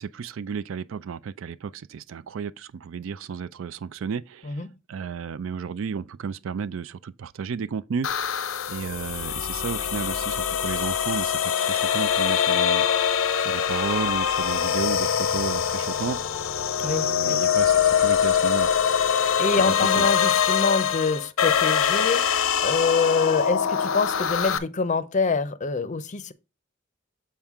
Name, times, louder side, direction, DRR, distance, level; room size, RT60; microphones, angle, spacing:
voice 1, 0.0-8.4 8.7-12.9 13.4-16.2 16.8-18.7 19.6-20.1, right 6 dB, 70° right, 0.4 m, -33 dB
sound 1, 8.0-24.6, left 8 dB, 90° left, 0.6 m, -23 dB
voice 2, 16.8-17.4 19.1-26.3, left 4 dB, 35° left, 0.5 m, -26 dB
7.3 x 4.4 x 3.5 m
head